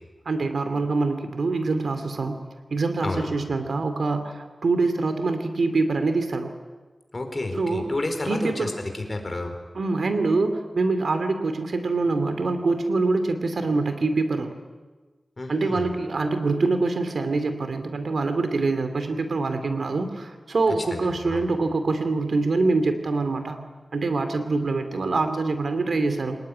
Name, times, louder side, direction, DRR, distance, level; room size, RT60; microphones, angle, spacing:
voice 1, 0.3-2.4 2.7-6.5 7.6-7.9 8.3-8.7 9.7-14.5 15.5-23.7 23.9-26.4, right 3 dB, 85° right, 8 dB, 2.6 m, -25 dB
voice 2, 3.0-3.3 7.1-8.7 9.0-9.5 15.4-15.8 20.9-21.5, left 2 dB, 40° left, 5 dB, 4.4 m, -30 dB
26.0 x 19.5 x 9.9 m, 1.3 s
wide cardioid pair, 95°, 0 cm